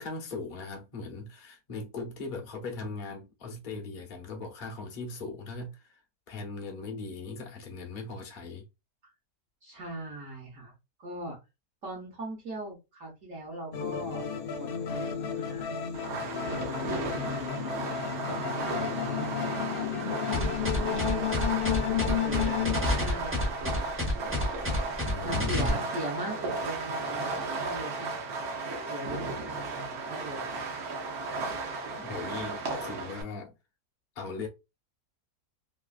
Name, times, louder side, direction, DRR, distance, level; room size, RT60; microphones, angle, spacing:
voice 1, 0.0-6.0 6.3-8.7 25.0-25.8 32.0-33.5 34.2-34.5, left 3 dB, 45° left, 0.7 m, -39 dB
voice 2, 9.6-10.7 11.0-11.4 11.8-14.2 14.5-15.7 17.0-17.8 18.3-19.9 20.3-21.4 22.2-23.8 25.2-28.2 28.9-30.4, right 1 dB, 55° right, 1.3 m, -40 dB
sound 1, 13.7-22.8, left 9 dB, 85° left, 0.4 m, -32 dB
Fireworks, 15.9-33.2, right 3 dB, 70° right, 1.2 m, -35 dB
sound 2, 20.3-25.7, left 1 dB, 20° right, 0.3 m, -29 dB
3.1 x 2.3 x 2.3 m
omnidirectional pair, 1.7 m